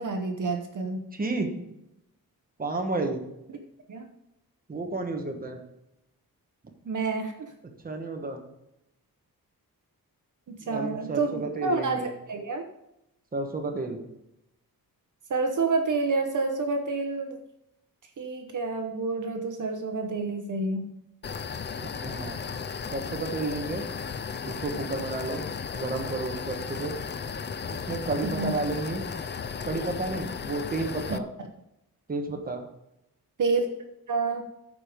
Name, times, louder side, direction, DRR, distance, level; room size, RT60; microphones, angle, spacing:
voice 1, 0.0-1.0 3.9-4.0 6.9-7.5 10.5-12.0 12.3-12.6 15.3-17.4 18.2-20.9 28.2-28.5 31.1-31.2 33.4-33.6 34.1-34.4, right 3 dB, 55° right, 4 dB, 1.0 m, -28 dB
voice 2, 1.1-1.5 2.6-3.2 4.7-5.6 7.8-8.4 10.6-12.1 13.3-14.0 21.8-22.4 22.9-23.9 24.5-25.4 25.7-26.9 27.7-29.0 29.6-31.3 32.1-32.6, right 3 dB, 25° right, 3 dB, 1.3 m, -31 dB
sound 1, 21.2-31.2, left 6 dB, 30° left, 0.4 m, -35 dB
14.0 x 5.0 x 5.1 m, 0.86 s
wide cardioid pair, 180°, 36 cm